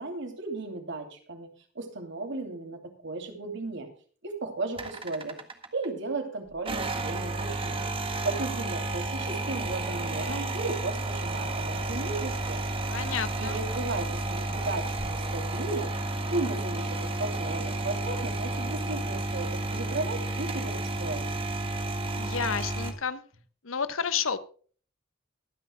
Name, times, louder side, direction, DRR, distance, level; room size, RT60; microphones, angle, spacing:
voice 1, 0.0-1.5 1.7-3.9 4.2-5.4 5.7-7.9 8.2-12.6 13.4-16.0 16.3-21.3, right 3 dB, 65° right, 4 dB, 2.8 m, -35 dB
sound 1, 4.8-5.9 6.6-22.9, right 2 dB, 30° right, 1.6 m, -32 dB
voice 2, 12.9-13.6 22.1-23.2 23.6-24.4, left 6 dB, 90° left, 12 dB, 1.0 m, -30 dB
23.5 x 9.6 x 2.3 m, 0.43 s
head